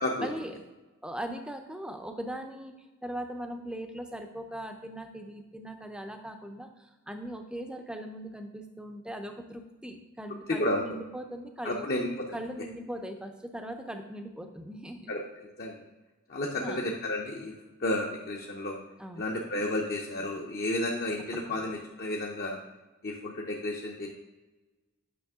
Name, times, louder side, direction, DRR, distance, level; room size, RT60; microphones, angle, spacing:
voice 1, 0.2-0.6 1.0-2.7 3.0-11.9 12.3-15.1 16.6-16.9 19.0-19.3 21.5-21.6, right 1 dB, 5° right, 6 dB, 0.5 m, -39 dB
voice 2, 11.6-12.1 15.1-15.2 15.6-15.8 16.3-17.5 17.8-18.8 19.2-22.6 23.0-24.1, left 1 dB, 45° left, -1 dB, 0.7 m, -31 dB
9.2 x 5.7 x 3.6 m, 1.1 s
head